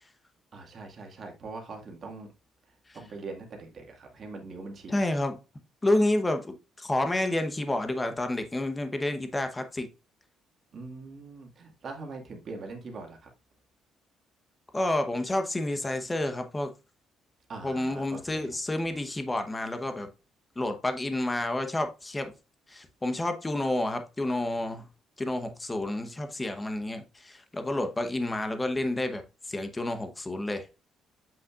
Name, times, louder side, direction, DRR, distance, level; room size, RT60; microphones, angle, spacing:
voice 1, 0.5-2.3 2.9-5.0 10.7-13.3 17.5-18.6, right 3 dB, 40° right, 1.9 m, -42 dB
voice 2, 4.9-5.4 5.8-9.9 14.7-16.7 17.6-20.1 20.6-22.3 22.7-24.8 25.2-29.2 29.5-30.6, left 1 dB, 15° left, 0.9 m, -29 dB
7.8 x 5.7 x 2.4 m
cardioid pair, 150°, 0 cm